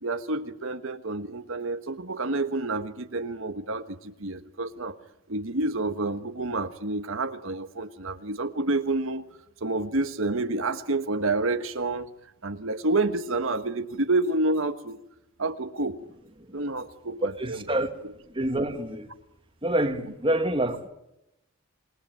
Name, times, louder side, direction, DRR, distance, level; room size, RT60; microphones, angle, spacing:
voice 1, 0.0-5.0 5.3-9.2 9.6-12.1 12.4-15.0 15.4-16.0 16.5-17.6, right 2 dB, 65° right, 1.4 m, -29 dB
voice 2, 17.2-17.9 18.4-19.1 19.6-20.9, right 1 dB, 25° right, 1.9 m, -27 dB
27.5 x 20.5 x 9.3 m
head